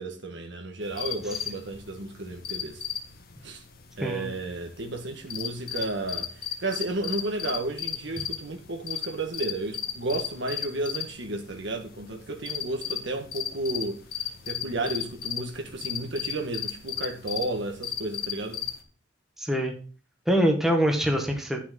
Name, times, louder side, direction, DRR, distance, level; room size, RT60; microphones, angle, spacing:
voice 1, 0.0-2.8 3.4-3.6 4.0-14.0 14.4-18.6, right 2 dB, 70° right, 1.6 m, -32 dB
sound 1, 0.8-18.8, left 9 dB, 55° left, 1.5 m, -36 dB
voice 2, 19.4-19.7 20.3-21.6, equal, ahead, 1.6 m, -24 dB
10.0 x 6.5 x 3.9 m
head